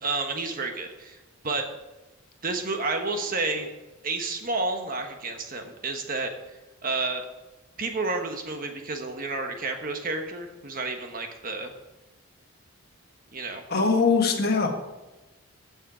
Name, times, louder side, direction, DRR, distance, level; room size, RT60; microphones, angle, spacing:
voice 1, 0.0-1.7 2.4-3.7 4.0-6.3 6.8-7.2 7.8-11.7 13.3-13.6, right 3 dB, 40° right, 5 dB, 1.2 m, -30 dB
voice 2, 13.7-14.8, left 4 dB, 45° left, 2 dB, 1.6 m, -22 dB
15.0 x 6.5 x 4.9 m, 1.1 s
head